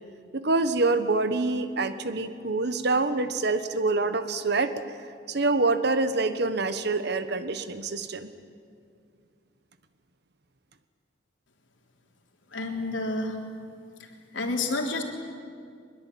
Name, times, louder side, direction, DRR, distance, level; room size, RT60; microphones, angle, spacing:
voice 1, 0.3-4.8 5.3-8.3, right 3 dB, 60° right, 11 dB, 1.4 m, -26 dB
voice 2, 12.5-13.4 14.3-15.0, left 2 dB, 90° left, 2 dB, 3.5 m, -29 dB
22.0 x 22.0 x 9.4 m, 2.2 s
head